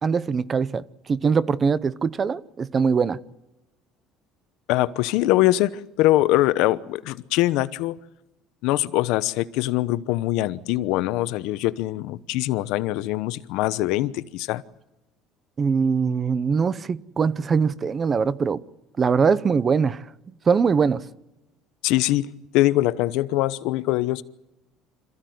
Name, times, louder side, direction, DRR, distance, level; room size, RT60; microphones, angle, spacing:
voice 1, 0.0-3.2 15.6-18.6 19.0-20.0 20.5-21.0, right 5 dB, 25° right, 0.8 m, -22 dB
voice 2, 4.7-8.0 8.6-14.6 21.8-22.3 22.5-24.2, left 16 dB, 70° left, 0.9 m, -23 dB
27.0 x 15.0 x 9.4 m
cardioid pair, 145°, 0 cm